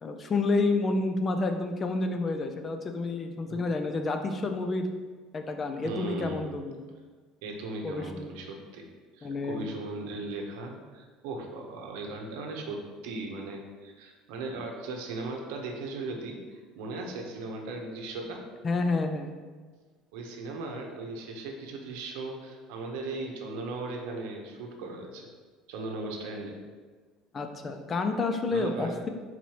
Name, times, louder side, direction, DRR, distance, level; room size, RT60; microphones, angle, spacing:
voice 1, 0.0-4.9 5.3-6.8 7.8-8.3 9.2-9.7 18.6-19.3 27.3-29.1, left 3 dB, 25° left, 6 dB, 0.3 m, -29 dB
voice 2, 5.8-6.5 7.4-18.4 20.1-25.3 25.7-26.6 28.5-29.0, right 2 dB, 85° right, 1 dB, 0.8 m, -38 dB
4.6 x 4.0 x 2.9 m, 1.4 s
cardioid pair, 160°, 0 cm